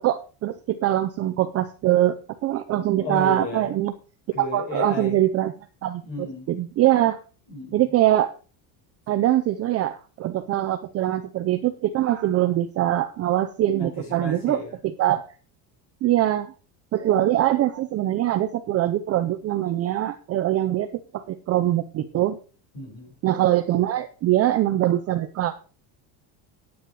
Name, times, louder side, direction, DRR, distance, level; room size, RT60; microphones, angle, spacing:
voice 1, 0.0-3.9 4.5-5.5 5.8-6.0 6.5-7.2 7.7-8.3 9.1-14.6 15.0-15.3 16.0-16.5 16.9-20.9 21.1-22.4 23.2-25.5, right 13 dB, 30° right, 9 dB, 0.5 m, -23 dB
voice 2, 3.0-3.7 4.3-5.2 6.0-6.5 7.5-8.0 13.8-14.8 22.7-23.2, left 3 dB, 50° left, -2 dB, 6.1 m, -33 dB
9.4 x 9.4 x 4.7 m, 0.37 s
cardioid pair, 160°, 47 cm